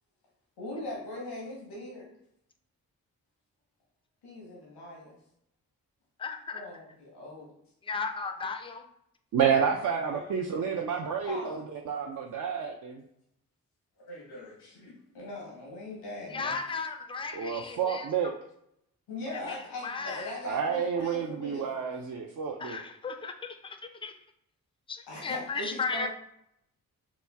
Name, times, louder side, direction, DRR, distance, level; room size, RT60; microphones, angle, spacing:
voice 1, 0.6-2.1 4.2-5.2 6.5-7.5 10.0-10.7 11.3-11.6 14.0-16.6 19.1-21.7 25.1-26.1, left 2 dB, 90° left, -3 dB, 0.9 m, -41 dB
voice 2, 6.2-6.6 7.8-8.8 16.3-18.1 19.4-19.6 19.8-20.4 22.6-24.1 24.9-26.1, left 4 dB, 15° left, 6 dB, 0.4 m, -35 dB
voice 3, 9.3-13.0 17.3-18.3 20.4-22.8, right 7 dB, 55° right, 1 dB, 0.5 m, -29 dB
3.0 x 2.2 x 3.4 m, 0.76 s
supercardioid pair, 45°, 39 cm